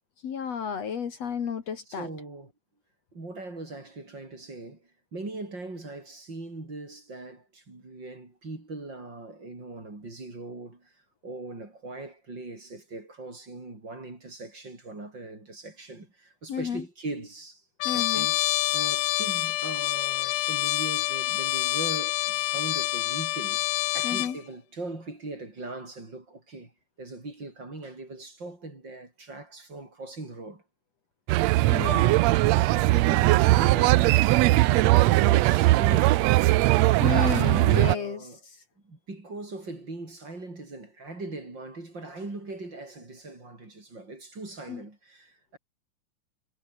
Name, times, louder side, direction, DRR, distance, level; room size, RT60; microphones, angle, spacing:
voice 1, 0.2-2.1 16.5-16.8 17.8-18.3 24.0-24.4 31.7-32.2 37.0-38.3 44.7-44.8, left 7 dB, 55° left, 2.9 m, -32 dB
voice 2, 1.9-2.5 3.1-23.6 23.9-26.7 27.0-30.6 32.5-36.4 37.2-38.4 38.8-45.6, right 2 dB, 35° right, 6.6 m, -40 dB
Trumpet, 17.8-24.3, left 17 dB, 85° left, 2.2 m, -27 dB
sound 1, 31.3-38.0, right 18 dB, 80° right, 1.6 m, -20 dB
omnidirectional pair, 3.6 m